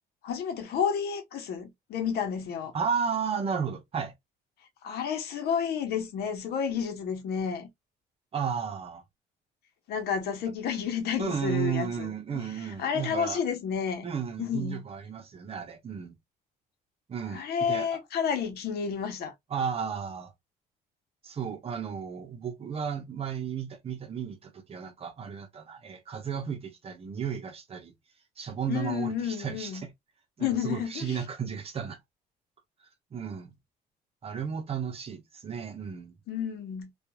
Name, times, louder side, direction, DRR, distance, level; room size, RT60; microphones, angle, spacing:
voice 1, 0.2-2.7 4.8-7.7 9.9-12.4 12.8-14.0 14.4-14.8 17.3-19.3 28.7-29.8 30.4-31.2 36.3-36.9, left 7 dB, 70° left, 0.9 m, -31 dB
voice 2, 2.7-4.1 8.3-9.0 11.2-13.4 14.0-16.1 17.1-18.0 19.5-20.3 21.2-27.9 28.4-29.9 30.4-32.0 33.1-33.5 34.2-36.2, right 7 dB, 35° right, 0.8 m, -33 dB
2.9 x 2.4 x 2.2 m
cardioid pair, 110°, 17 cm